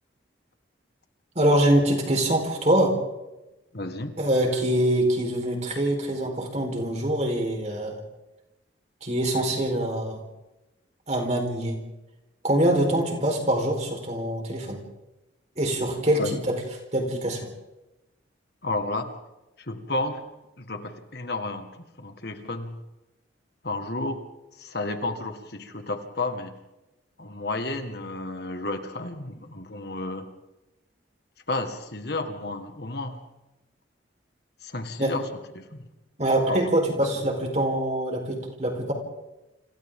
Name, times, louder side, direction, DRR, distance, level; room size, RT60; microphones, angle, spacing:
voice 1, 1.3-2.9 4.2-8.0 9.0-10.2 11.1-11.8 12.4-14.8 15.6-16.6 16.9-17.5 35.0-35.1 36.2-38.9, right 1 dB, 35° right, 2 dB, 4.4 m, -24 dB
voice 2, 3.7-4.1 16.2-16.3 18.6-19.1 19.7-20.2 20.6-22.8 23.6-24.2 24.6-26.5 27.2-30.3 31.5-33.2 34.6-35.3 35.6-35.8 36.5-36.7, left 2 dB, 55° left, 6 dB, 1.9 m, -32 dB
29.5 x 26.5 x 3.8 m, 1.0 s
head